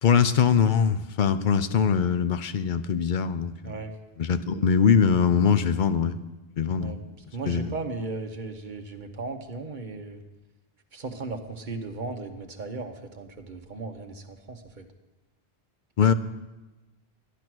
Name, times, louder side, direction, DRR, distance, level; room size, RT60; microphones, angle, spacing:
voice 1, 0.0-3.7 4.2-6.2 6.6-7.0 7.5-7.7 16.0-16.1, left 7 dB, 55° left, 12 dB, 0.7 m, -22 dB
voice 2, 7.3-10.2 10.9-14.9, right 3 dB, 50° right, 5 dB, 1.2 m, -36 dB
13.0 x 10.0 x 6.2 m, 1.1 s
omnidirectional pair, 1.0 m